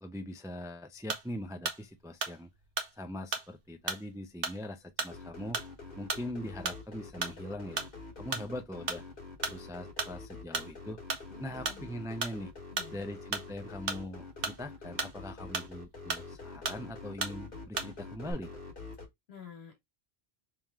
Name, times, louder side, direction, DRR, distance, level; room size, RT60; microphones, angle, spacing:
voice 1, 0.0-2.5 3.0-5.6 6.0-7.9 8.2-9.0 9.5-11.0 11.4-12.5 12.9-18.5, left 1 dB, 5° right, 0.3 m, -41 dB
sound 1, 1.1-1.4 1.7-1.9 2.2-2.9 3.3-3.6 3.9-4.1 4.4-4.6 5.0-5.2 5.5-5.8 6.1-6.3 6.7-6.9 7.2-7.5 7.8-7.9 8.3-8.5 8.9-9.0 9.4-9.6 10.0-10.2 10.5-10.7 11.1-11.3 11.7-11.8 12.2-12.4 12.8-12.9 13.3-13.5 13.9-14.6 15.0-15.2 15.5-15.7 16.1-16.3 16.7-16.8 17.2-17.4 17.8-17.9 18.2-18.3, right 4 dB, 65° right, 1.0 m, -35 dB
sound 2, 5.1-19.1, left 3 dB, 60° left, 1.5 m, -46 dB
voice 2, 11.3-11.9 12.7-13.2 19.3-19.8, left 7 dB, 80° left, 1.8 m, -50 dB
3.5 x 3.0 x 3.5 m
omnidirectional pair, 1.0 m